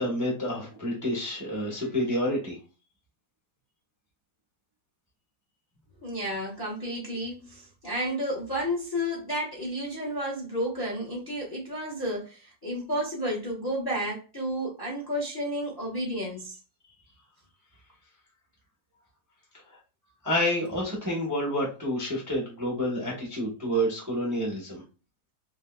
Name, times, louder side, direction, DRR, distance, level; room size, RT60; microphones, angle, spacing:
voice 1, 0.0-2.6 20.2-24.8, equal, 15° right, -4 dB, 0.7 m, -29 dB
voice 2, 6.0-16.6, equal, 20° left, -3 dB, 0.7 m, -31 dB
3.4 x 2.9 x 2.2 m, 0.33 s
omnidirectional pair, 1.9 m